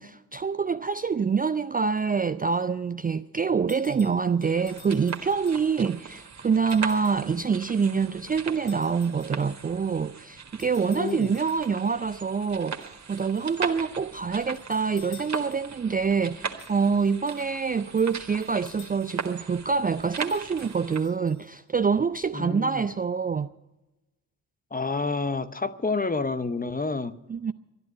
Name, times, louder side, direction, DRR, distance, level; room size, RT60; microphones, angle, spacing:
voice 1, 0.0-23.5 27.3-27.5, right 5 dB, 20° right, 0.4 m, -26 dB
sound 1, 3.7-5.9 6.7-7.3 8.7-9.7 10.6-12.0 12.8-13.6 14.4-15.8 16.6-19.4 20.0-21.8, left 7 dB, 60° left, 2.0 m, -53 dB
sound 2, 4.4-21.1, right 6 dB, 40° right, 1.5 m, -39 dB
voice 2, 10.8-11.3 22.3-22.9 24.7-27.1, left 3 dB, 20° left, 0.8 m, -29 dB
12.5 x 11.0 x 9.2 m
hypercardioid pair, 40°, 42 cm